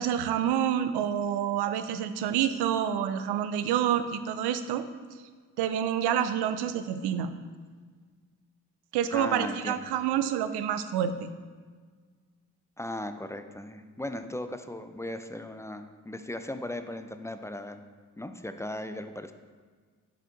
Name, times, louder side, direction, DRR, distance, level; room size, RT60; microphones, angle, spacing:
voice 1, 0.0-4.8 5.6-7.3 8.9-11.3, right 9 dB, 80° right, 11 dB, 0.5 m, -28 dB
voice 2, 9.1-9.8 12.8-17.8 18.2-19.3, left 1 dB, 10° left, 9 dB, 0.4 m, -37 dB
6.3 x 4.2 x 3.9 m, 1.5 s
supercardioid pair, 45°, 39 cm